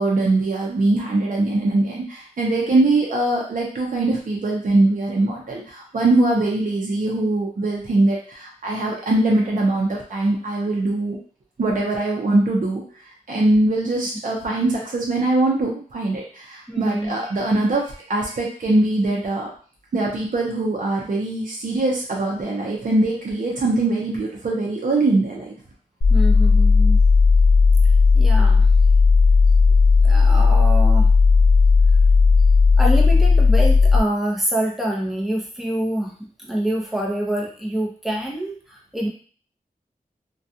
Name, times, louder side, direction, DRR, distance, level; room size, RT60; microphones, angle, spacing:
voice 1, 0.0-11.2 11.6-12.9 13.3-19.5 19.9-25.5, right 2 dB, 65° right, -2 dB, 0.6 m, -22 dB
voice 2, 16.7-17.1 26.1-27.0 28.1-28.7 30.0-31.1 32.8-39.1, right 1 dB, ahead, -3 dB, 0.7 m, -26 dB
sound 1, 26.0-34.0, left 4 dB, 60° left, 0.4 m, -14 dB
2.3 x 2.2 x 2.7 m, 0.42 s
wide cardioid pair, 95°, 15 cm